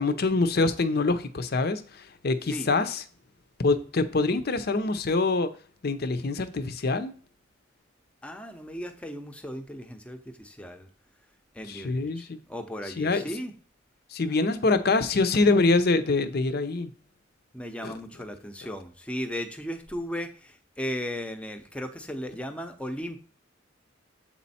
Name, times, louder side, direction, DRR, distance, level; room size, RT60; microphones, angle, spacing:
voice 1, 0.0-3.0 3.6-5.5 5.8-7.1 11.7-12.4 13.0-13.2 14.1-16.9 17.8-17.9, left 3 dB, 50° left, 0.6 m, -25 dB
voice 2, 8.2-10.9 11.5-13.5 14.2-14.8 17.5-23.2, equal, 5° left, 0.7 m, -36 dB
7.8 x 4.3 x 4.2 m
head